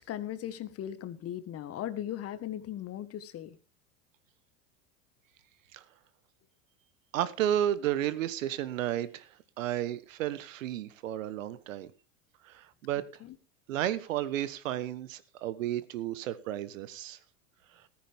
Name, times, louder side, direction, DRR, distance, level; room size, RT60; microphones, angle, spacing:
voice 1, 0.0-3.6 13.2-13.4, left 11 dB, 35° left, 1.5 m, -38 dB
voice 2, 7.1-11.9 12.4-13.0 13.7-17.2, right 11 dB, 80° right, 1.3 m, -32 dB
14.5 x 14.0 x 3.6 m
hypercardioid pair, 100°, 39 cm